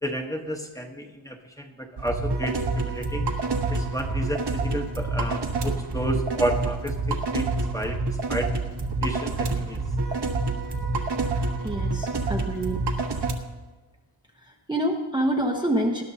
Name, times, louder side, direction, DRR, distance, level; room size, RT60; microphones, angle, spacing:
voice 1, 0.0-3.3 3.7-8.5 9.0-9.8, equal, 5° left, 3 dB, 1.1 m, -31 dB
sound 1, 2.0-13.3, right 3 dB, 55° right, 1.3 m, -27 dB
voice 2, 11.6-12.8 14.3-16.0, right 1 dB, 10° right, -1 dB, 0.9 m, -27 dB
19.0 x 12.0 x 2.8 m, 1.3 s
wide cardioid pair, 155°, 47 cm